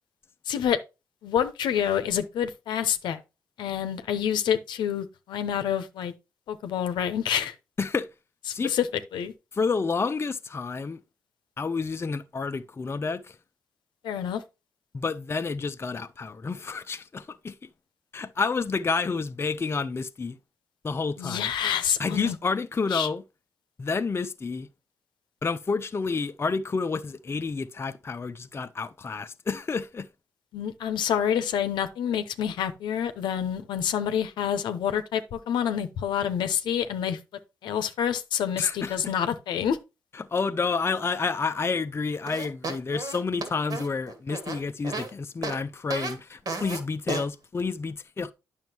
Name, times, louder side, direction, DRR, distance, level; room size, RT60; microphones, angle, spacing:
voice 1, 0.5-0.8 1.2-3.2 3.6-6.1 6.5-7.5 8.6-8.9 9.1-9.3 14.0-14.4 21.2-22.3 22.9-23.1 30.5-37.2 37.6-39.8, left 9 dB, 80° left, 0.8 m, -27 dB
voice 2, 7.8-8.1 8.5-8.7 9.5-11.0 11.6-13.4 14.9-17.5 18.1-20.4 20.8-21.5 22.0-23.2 23.8-24.7 25.4-30.1 38.6-39.1 40.1-48.3, left 4 dB, 35° left, 0.6 m, -29 dB
sound 1, 42.3-45.1 45.4-45.6 45.9-46.1 46.5-46.8 47.1-47.2, right 3 dB, 55° right, 2.2 m, -33 dB
9.1 x 6.3 x 2.9 m
supercardioid pair, 60°, 8 cm